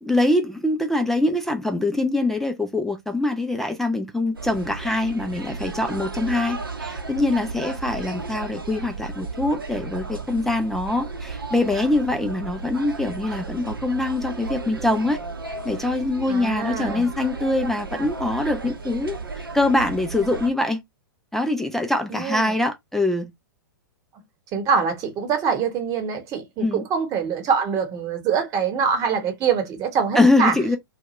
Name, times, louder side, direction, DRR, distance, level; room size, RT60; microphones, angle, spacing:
voice 1, 0.0-15.2 15.6-20.8 21.3-23.3 26.6-26.8 30.2-30.8, left 2 dB, 5° left, 0.4 m, -23 dB
sound 1, 4.3-20.5, right 4 dB, 85° right, 0.7 m, -34 dB
voice 2, 16.3-17.1 22.1-22.5 24.5-30.5, right 6 dB, 30° right, 1.0 m, -24 dB
2.7 x 2.2 x 3.0 m
figure-of-eight pair, 105°, 11 cm